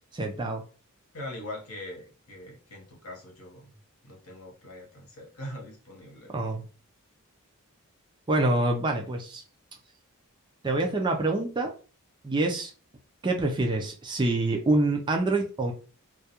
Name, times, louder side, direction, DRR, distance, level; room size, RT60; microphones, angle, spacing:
voice 1, 0.1-0.6 6.3-6.6 8.3-9.4 10.6-11.7 12.2-12.7 13.2-15.7, right 2 dB, 20° right, 2 dB, 0.3 m, -26 dB
voice 2, 1.1-3.8 4.0-6.3, left 1 dB, 70° left, -1 dB, 1.0 m, -42 dB
2.3 x 2.2 x 2.8 m, 0.37 s
head